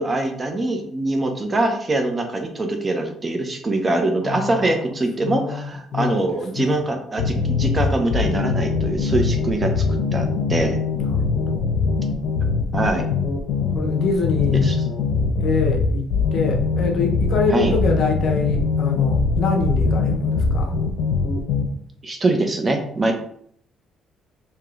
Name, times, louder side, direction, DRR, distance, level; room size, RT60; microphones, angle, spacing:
voice 1, 0.0-9.8 10.1-10.8 12.7-13.1 14.5-14.8 17.5-17.7 22.0-23.1, right 2 dB, 25° right, 4 dB, 0.7 m, -23 dB
voice 2, 4.2-4.7 5.2-6.3 6.6-6.8 11.0-11.7 13.7-14.7 15.4-20.8, left 4 dB, 60° left, 2 dB, 0.7 m, -25 dB
sound 1, 7.2-21.6, left 4 dB, 90° left, 0.6 m, -22 dB
4.8 x 2.8 x 2.5 m, 0.65 s
cardioid pair, 115°, 0 cm